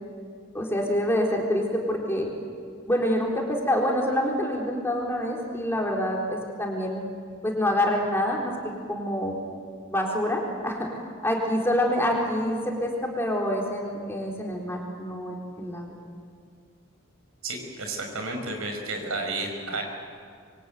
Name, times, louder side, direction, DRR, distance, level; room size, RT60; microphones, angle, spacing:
voice 1, 0.5-2.3 2.9-7.0 7.4-9.4 9.9-10.9 11.2-15.9, left 1 dB, 10° left, 0 dB, 4.1 m, -26 dB
voice 2, 17.4-19.8, right 2 dB, 85° right, 3 dB, 5.7 m, -32 dB
26.5 x 23.5 x 9.2 m, 2.2 s
head